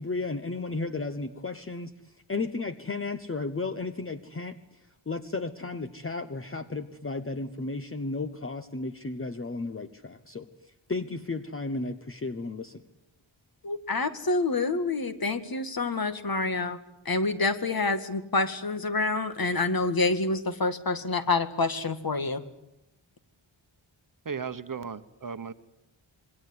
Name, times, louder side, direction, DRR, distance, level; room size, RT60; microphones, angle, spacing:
voice 1, 0.0-4.6 5.1-10.5 10.9-12.8, left 3 dB, 25° left, 8 dB, 1.1 m, -34 dB
voice 2, 13.6-16.8 17.1-22.4, left 3 dB, 45° left, 9 dB, 2.1 m, -27 dB
voice 3, 24.2-25.5, right 6 dB, 40° right, 11 dB, 1.2 m, -36 dB
27.0 x 21.5 x 9.7 m, 0.86 s
wide cardioid pair, 135°, 47 cm